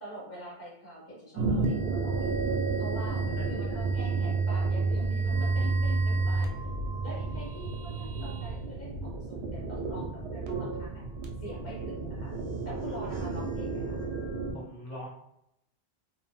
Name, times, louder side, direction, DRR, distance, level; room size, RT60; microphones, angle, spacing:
voice 1, 0.0-2.3 2.8-6.5 7.0-11.0 11.4-12.3 12.6-14.0, right 1 dB, 15° left, -4 dB, 0.6 m, -44 dB
sound 1, 1.3-14.5, right 3 dB, 80° right, 0.8 m, -31 dB
voice 2, 14.5-15.1, left 1 dB, 55° left, -7 dB, 1.4 m, -41 dB
2.7 x 2.1 x 3.0 m, 0.79 s
omnidirectional pair, 1.0 m